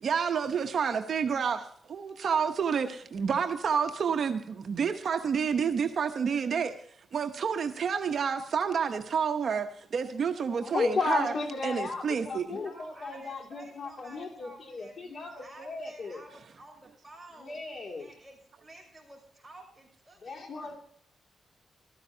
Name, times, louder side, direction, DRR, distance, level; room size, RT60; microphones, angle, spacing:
voice 1, 0.0-6.7 7.1-11.3 11.6-12.6, right 6 dB, 55° right, 0.9 m, -29 dB
voice 2, 10.6-16.2 17.4-18.1 20.2-20.8, left 4 dB, 55° left, 2.6 m, -34 dB
voice 3, 12.5-17.6 18.0-20.8, right 2 dB, 10° right, 6.1 m, -52 dB
15.0 x 13.5 x 2.8 m
cardioid pair, 105°, 0 cm